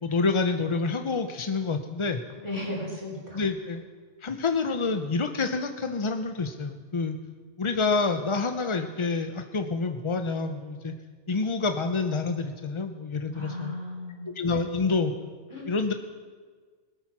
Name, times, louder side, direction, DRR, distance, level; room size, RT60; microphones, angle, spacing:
voice 1, 0.0-2.2 3.3-3.8 4.2-7.2 7.6-10.9 11.3-13.7 14.2-15.1 15.7-15.9, left 4 dB, 40° left, 6 dB, 0.4 m, -27 dB
voice 2, 2.3-3.4 13.3-14.3 15.5-15.7, left 1 dB, 20° left, -3 dB, 4.1 m, -35 dB
20.5 x 8.7 x 6.0 m, 1.5 s
omnidirectional pair, 1.4 m